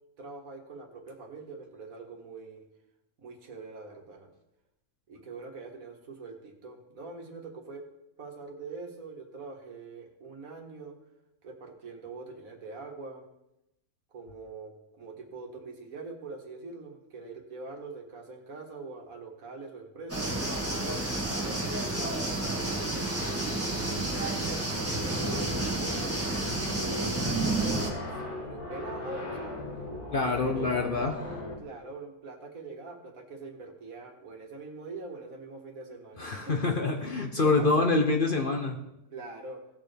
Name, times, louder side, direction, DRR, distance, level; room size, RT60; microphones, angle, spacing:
voice 1, 0.2-2.6 3.2-4.3 5.1-7.9 8.2-11.0 11.4-13.2 14.1-20.3 20.8-23.1 23.4-26.3 26.7-29.6 30.2-31.2 31.6-36.9 37.4-37.9 39.1-39.6, right 3 dB, 65° right, 2 dB, 1.9 m, -43 dB
sound 1, 20.1-27.9, right 2 dB, 10° right, 1.8 m, -30 dB
sound 2, 25.1-31.6, left 2 dB, 80° left, 2.6 m, -38 dB
voice 2, 30.1-31.2 36.2-38.8, left 3 dB, 45° left, 3 dB, 0.8 m, -26 dB
17.0 x 6.8 x 3.4 m, 0.87 s
omnidirectional pair, 1.6 m